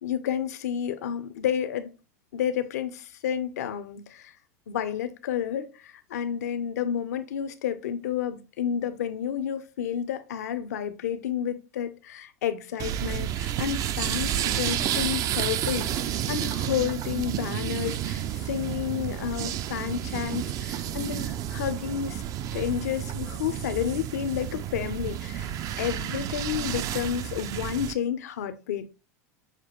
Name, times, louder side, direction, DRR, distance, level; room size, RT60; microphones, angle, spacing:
voice 1, 0.0-1.9 2.3-4.3 4.7-22.2 22.5-28.9, left 9 dB, 80° left, 0.6 m, -31 dB
sound 1, 12.8-27.9, right 11 dB, 45° right, 0.4 m, -31 dB
6.6 x 2.2 x 3.0 m
hypercardioid pair, 100°, 9 cm